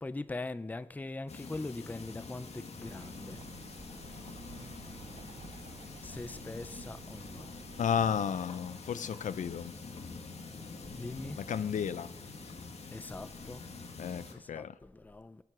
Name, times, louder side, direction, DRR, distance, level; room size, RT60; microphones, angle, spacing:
voice 1, 0.0-3.9 5.5-5.6 6.0-7.5 11.0-11.4 12.9-13.6 14.3-15.4, left 2 dB, 15° left, 0.4 m, -42 dB
sound 1, 1.3-14.3, left 4 dB, 55° left, 1.9 m, -46 dB
Bird, 2.8-8.2, right 7 dB, 55° right, 0.5 m, -53 dB
voice 2, 7.8-9.7 11.5-12.1 14.0-14.7, left 8 dB, 85° left, 0.6 m, -33 dB
22.0 x 7.8 x 6.0 m
wide cardioid pair, 125°, 13 cm